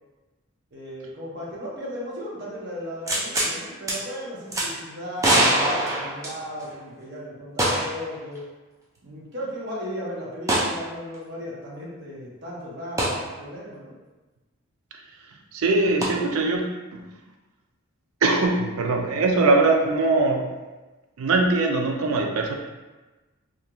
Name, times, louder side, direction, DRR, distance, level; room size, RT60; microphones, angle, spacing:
voice 1, 0.7-8.4 9.0-14.0, equal, 55° right, -5 dB, 0.7 m, -36 dB
sound 1, 3.1-3.5 3.9-4.0 4.5-4.7 5.2-6.7 7.6-8.0 8.3-8.4 10.5-10.7 13.0-13.2 16.0-16.1, right 1 dB, 15° right, 0.3 m, -22 dB
voice 2, 15.5-16.6 16.9-17.1 18.2-20.5 21.2-22.5, right 3 dB, 85° right, 2 dB, 0.4 m, -21 dB
2.4 x 2.3 x 2.9 m, 1.2 s
head